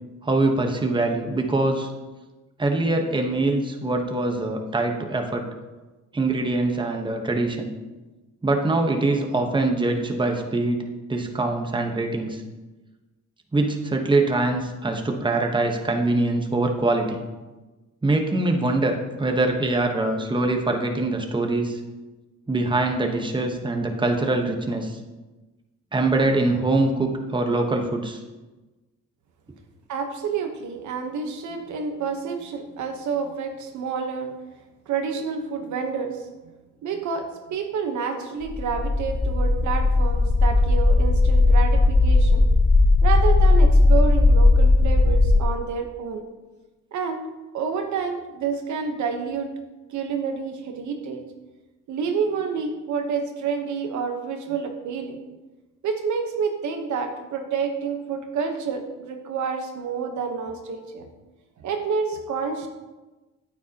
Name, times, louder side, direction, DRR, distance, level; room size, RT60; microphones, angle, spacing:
voice 1, 0.2-1.9 2.6-5.5 6.1-7.7 8.4-10.8 11.1-12.4 13.5-17.2 18.0-21.8 22.5-25.0 25.9-28.2, right 2 dB, 15° right, 3 dB, 1.1 m, -23 dB
voice 2, 29.9-34.3 34.9-36.3 36.8-42.4 43.0-46.2 46.9-47.2 47.5-49.5 49.9-51.2 51.9-55.2 55.8-61.1 61.6-62.7, right 5 dB, 70° right, 4 dB, 1.1 m, -28 dB
sound 1, 38.5-45.4, left 2 dB, 15° left, 0.6 m, -17 dB
9.3 x 9.1 x 2.9 m, 1.2 s
cardioid pair, 90°, 30 cm